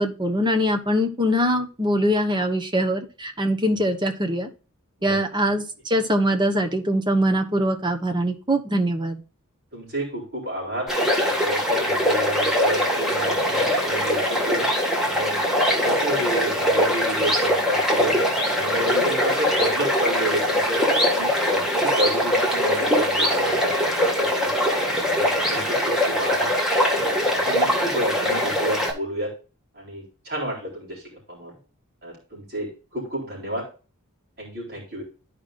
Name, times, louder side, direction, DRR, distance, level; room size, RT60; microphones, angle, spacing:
voice 1, 0.0-4.5 5.0-9.2, equal, 20° right, 5 dB, 1.1 m, -23 dB
voice 2, 9.7-10.9 11.4-14.7 15.1-15.4 15.8-18.2 18.5-24.5 24.9-26.5 26.9-29.3 29.7-31.5 32.0-33.7 34.4-35.0, right 1 dB, 45° right, -4 dB, 3.9 m, -31 dB
sound 1, 10.9-28.9, equal, ahead, 1.7 m, -22 dB
12.5 x 5.0 x 2.5 m, 0.34 s
head